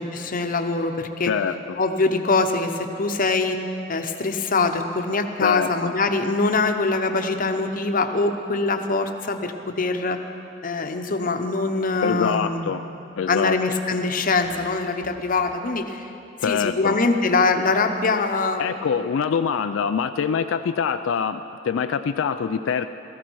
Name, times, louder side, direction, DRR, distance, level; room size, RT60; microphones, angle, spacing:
voice 1, 0.0-1.3 1.8-3.6 3.9-10.2 10.6-12.7 13.3-16.1 16.4-18.7, left 3 dB, 45° left, 6 dB, 0.9 m, -23 dB
voice 2, 1.3-1.8 5.4-5.9 12.0-12.8 13.2-13.6 16.4-17.0 18.6-22.9, left 6 dB, 85° left, 9 dB, 0.4 m, -24 dB
16.5 x 14.5 x 4.7 m, 2.9 s
head